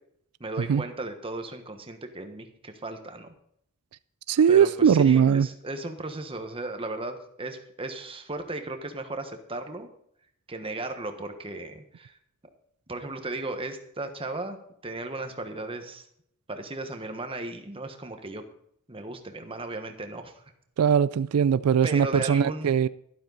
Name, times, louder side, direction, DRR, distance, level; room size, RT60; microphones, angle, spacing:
voice 1, 0.4-3.3 4.5-9.9 10.5-12.1 12.9-16.0 16.5-18.4 18.9-20.4 21.8-22.7, right 2 dB, 25° right, 1.3 m, -36 dB
voice 2, 4.3-5.5 20.8-22.9, right 7 dB, 90° right, 0.4 m, -20 dB
12.0 x 12.0 x 4.0 m
head